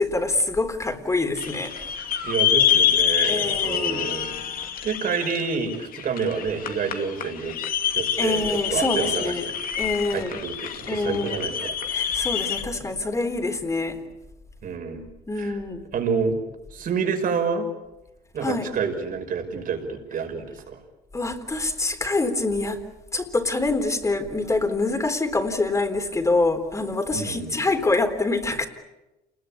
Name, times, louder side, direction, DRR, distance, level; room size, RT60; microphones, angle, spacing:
voice 1, 0.0-1.7 3.3-4.1 8.2-9.4 9.8-10.4 10.9-11.5 11.9-14.0 15.3-15.8 18.4-18.7 21.1-22.8 23.1-28.7, left 3 dB, 20° left, 6 dB, 3.8 m, -25 dB
sound 1, 1.4-12.6, left 9 dB, 55° left, 2.4 m, -26 dB
voice 2, 2.2-7.6 7.9-9.4 10.1-11.8 14.6-15.1 15.3-15.6 15.9-16.4 16.7-17.7 18.3-20.8 27.1-27.6, right 5 dB, 55° right, 4 dB, 5.6 m, -28 dB
29.0 x 21.0 x 8.7 m, 1.0 s
cardioid pair, 110°, 17 cm